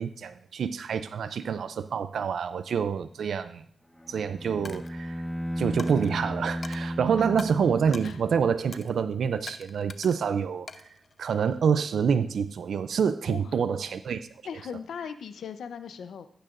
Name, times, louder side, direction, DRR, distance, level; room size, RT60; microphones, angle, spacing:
voice 1, 0.0-3.6 4.1-5.2 5.6-10.7 11.2-14.2, right 6 dB, 80° right, 12 dB, 0.4 m, -27 dB
Bowed string instrument, 4.0-8.8, equal, 10° left, 1.2 m, -34 dB
Coin (dropping), 4.6-5.0 5.8-6.1 6.6-6.8 7.4-7.5 7.9-8.2 8.7-8.9 9.5-10.2 10.7-11.6, left 4 dB, 55° left, 0.7 m, -43 dB
voice 2, 13.3-13.6 14.4-16.3, left 7 dB, 90° left, 10 dB, 0.7 m, -38 dB
14.5 x 9.0 x 2.6 m, 0.63 s
cardioid pair, 60°, 0 cm